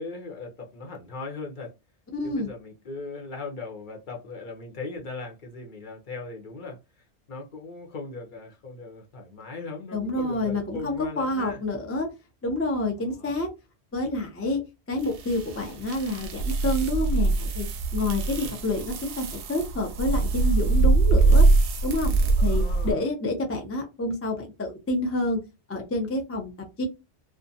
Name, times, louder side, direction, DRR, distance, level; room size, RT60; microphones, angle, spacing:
voice 1, 0.0-1.7 2.2-11.6 13.0-13.4 18.3-18.6 22.4-23.1, left 3 dB, 50° left, 0.8 m, -39 dB
voice 2, 2.1-2.5 9.9-12.1 12.4-13.5 13.9-14.6 14.9-17.7 17.9-21.5 21.8-25.4 25.7-26.5 26.8-26.9, left 1 dB, 20° left, 0.4 m, -28 dB
sound 1, 15.0-22.9, right 3 dB, 90° right, 0.9 m, -23 dB
2.4 x 2.2 x 2.6 m
omnidirectional pair, 1.1 m